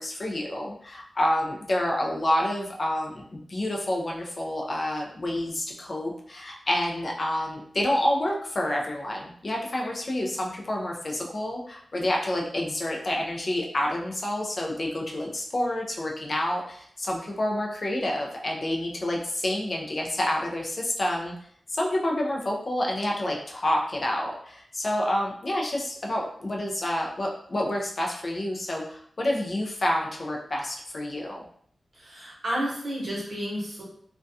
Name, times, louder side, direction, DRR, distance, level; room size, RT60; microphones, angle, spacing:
voice 1, 0.0-21.3 21.7-31.4, left 1 dB, 40° left, -1 dB, 0.4 m, -28 dB
voice 2, 31.9-33.8, equal, 45° right, -5 dB, 0.9 m, -31 dB
2.3 x 2.2 x 2.6 m, 0.62 s
wide cardioid pair, 145°, 0 cm